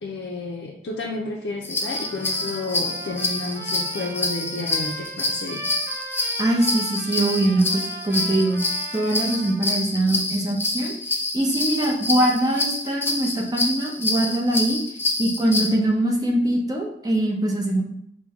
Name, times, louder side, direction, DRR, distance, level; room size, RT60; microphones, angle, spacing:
voice 1, 0.0-5.6, left 2 dB, 70° left, -1 dB, 0.5 m, -31 dB
sound 1, 1.7-15.7, left 2 dB, 15° left, 0.3 m, -27 dB
Trumpet, 1.8-9.8, right 2 dB, 60° right, 1.0 m, -39 dB
voice 2, 6.4-8.6 8.9-14.8 15.2-17.8, right 1 dB, 20° right, -1 dB, 0.7 m, -22 dB
5.9 x 2.2 x 3.5 m, 0.73 s
head